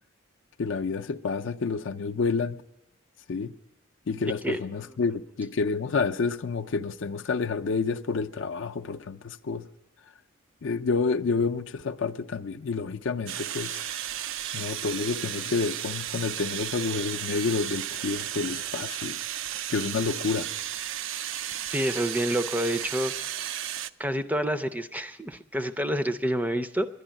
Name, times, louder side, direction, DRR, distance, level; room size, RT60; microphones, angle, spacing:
voice 1, 0.6-2.6 3.3-3.5 4.1-9.7 10.6-13.8 14.5-19.2 19.7-20.5, left 4 dB, 65° left, 0.5 m, -29 dB
voice 2, 4.4-4.9 21.7-23.1 24.0-26.9, equal, 10° right, 0.4 m, -28 dB
sound 1, 13.3-23.9, right 11 dB, 70° right, 0.4 m, -34 dB
11.0 x 10.5 x 8.8 m
head